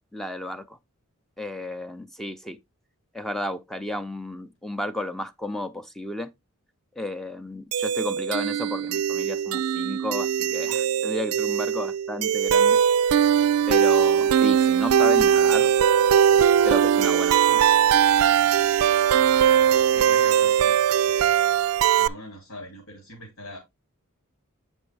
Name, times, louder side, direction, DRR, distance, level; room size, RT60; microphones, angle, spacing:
voice 1, 0.1-0.8 1.4-2.6 3.1-6.3 7.0-12.8 13.7-15.7 16.6-17.6, left 1 dB, ahead, 0.5 m, -33 dB
sound 1, 7.7-22.1, right 9 dB, 90° right, 0.4 m, -20 dB
voice 2, 18.6-19.0 19.8-20.8 21.0-21.4 22.0-23.6, left 1 dB, 80° left, 2.8 m, -43 dB
8.0 x 5.3 x 3.3 m
head